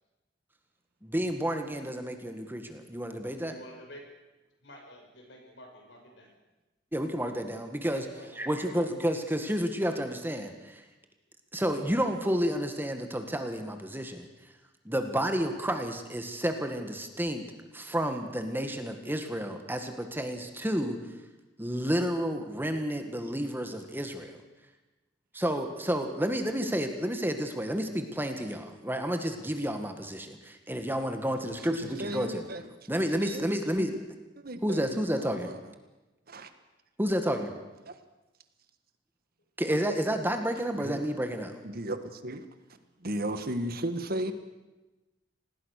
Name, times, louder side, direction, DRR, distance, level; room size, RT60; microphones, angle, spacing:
voice 1, 1.0-3.6 6.9-8.1 8.3-10.8 11.5-14.3 14.9-17.4 17.7-21.0 21.6-24.3 25.3-32.4 32.9-34.0 34.6-35.5 37.0-37.5 39.6-41.6, equal, 10° right, 6 dB, 1.9 m, -30 dB
voice 2, 3.4-4.1 4.6-6.3 7.9-8.5, equal, 70° left, 2 dB, 6.8 m, -50 dB
voice 3, 31.4-32.6 33.2-33.4 34.4-35.6 36.3-36.5 37.9-38.0 40.7-41.0 41.6-42.5 43.0-44.3, right 1 dB, 55° right, 9 dB, 1.7 m, -35 dB
26.5 x 19.0 x 6.7 m, 1.1 s
head